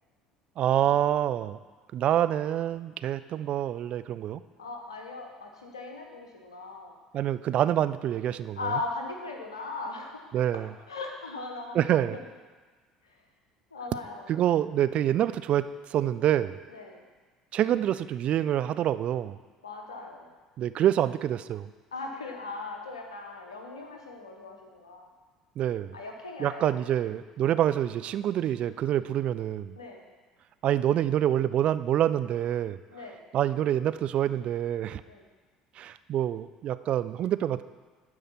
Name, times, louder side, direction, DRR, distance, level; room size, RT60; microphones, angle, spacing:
voice 1, 0.6-1.6 1.9-4.4 7.1-8.6 10.3-10.7 11.7-12.2 14.3-16.6 17.5-19.4 20.6-21.7 25.6-25.9 26.4-29.8 30.6-32.8 33.3-35.0 35.8-37.6, right 11 dB, 45° right, 13 dB, 0.3 m, -26 dB
voice 2, 4.6-7.0 8.5-10.4 10.9-12.3 13.0-13.2 13.7-14.3 16.7-17.1 19.6-20.3 21.9-25.1 25.9-26.8 29.8-30.0 32.9-33.2 35.0-35.3, left 3 dB, 80° left, 2 dB, 1.1 m, -39 dB
10.5 x 4.9 x 5.9 m, 1.4 s
figure-of-eight pair, 60°, 3 cm